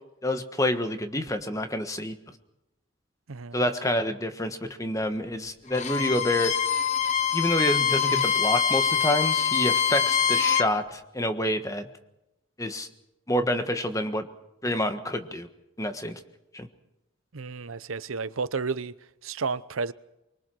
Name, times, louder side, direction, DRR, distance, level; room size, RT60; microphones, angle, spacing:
voice 1, 0.2-2.1 3.5-6.5 7.3-11.9 12.6-12.9 13.3-14.3 14.6-15.5 15.8-16.2 16.5-16.7, left 1 dB, 15° left, 1.4 m, -27 dB
voice 2, 3.3-3.6 17.3-18.9 19.2-19.9, right 4 dB, 85° right, 0.8 m, -31 dB
Bowed string instrument, 5.7-10.7, left 7 dB, 35° left, 0.9 m, -24 dB
24.5 x 23.0 x 6.3 m
head